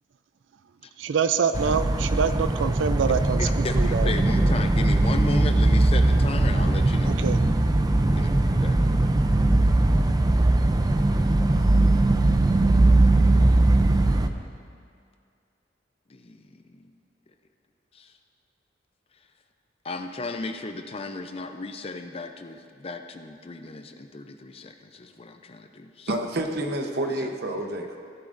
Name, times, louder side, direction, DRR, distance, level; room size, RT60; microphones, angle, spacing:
voice 1, 1.0-3.4 3.8-4.1 7.2-7.4, right 6 dB, 85° right, 11 dB, 0.4 m, -25 dB
sound 1, 1.5-14.3, right 2 dB, 20° right, 0.4 m, -20 dB
voice 2, 3.1-7.4 8.1-8.3 8.6-8.9 16.1-16.6 17.9-18.1 19.8-26.1 27.2-27.3, left 3 dB, 30° left, 7 dB, 0.5 m, -35 dB
voice 3, 26.1-28.0, right 1 dB, 60° right, 4 dB, 0.9 m, -29 dB
16.0 x 11.0 x 2.6 m, 2.3 s
head